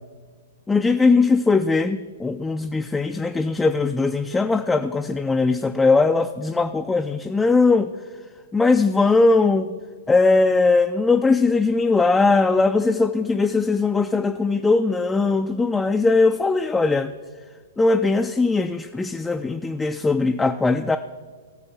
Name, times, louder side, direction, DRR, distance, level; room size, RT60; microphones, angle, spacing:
voice 1, 0.7-7.9 8.5-9.7 10.1-17.1 17.8-21.0, left 3 dB, 10° left, 6 dB, 0.3 m, -20 dB
18.0 x 6.7 x 3.9 m, 1.5 s
figure-of-eight pair, 110°, 0 cm